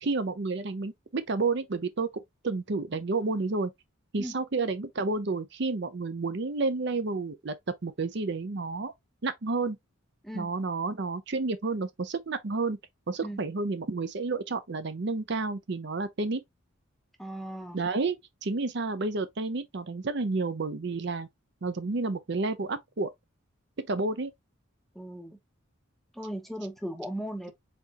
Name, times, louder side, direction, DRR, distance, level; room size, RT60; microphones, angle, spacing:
voice 1, 0.0-2.1 2.4-3.7 4.1-7.5 7.8-8.9 9.2-9.8 10.3-12.8 13.1-16.4 17.7-18.2 18.4-21.3 21.6-23.1 23.9-24.3, right 3 dB, 55° right, 0.6 m, -30 dB
voice 2, 17.2-17.8 24.9-25.4 26.1-27.5, equal, ahead, 0.7 m, -37 dB
4.3 x 4.0 x 2.9 m
head